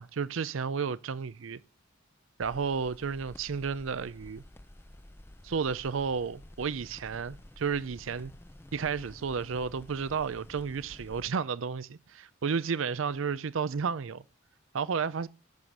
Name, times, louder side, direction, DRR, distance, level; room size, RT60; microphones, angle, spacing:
voice 1, 0.0-1.6 2.4-4.4 5.4-8.3 8.7-14.2 14.7-15.3, right 6 dB, 70° right, 0.5 m, -32 dB
sound 1, 2.4-11.3, left 1 dB, 10° left, 0.5 m, -51 dB
16.0 x 7.1 x 6.4 m
head